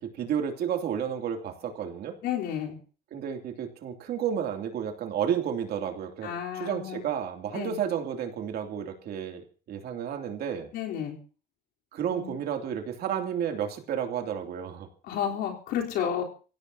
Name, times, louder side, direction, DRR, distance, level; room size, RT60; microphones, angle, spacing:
voice 1, 0.0-2.2 3.1-10.7 11.9-14.9, right 8 dB, 65° right, 4 dB, 2.9 m, -31 dB
voice 2, 2.2-2.8 6.2-7.1 7.5-7.8 10.7-11.2 12.1-12.3 15.1-16.2, left 9 dB, 85° left, -1 dB, 3.9 m, -31 dB
27.5 x 16.5 x 2.9 m, 0.37 s
cardioid pair, 110°, 17 cm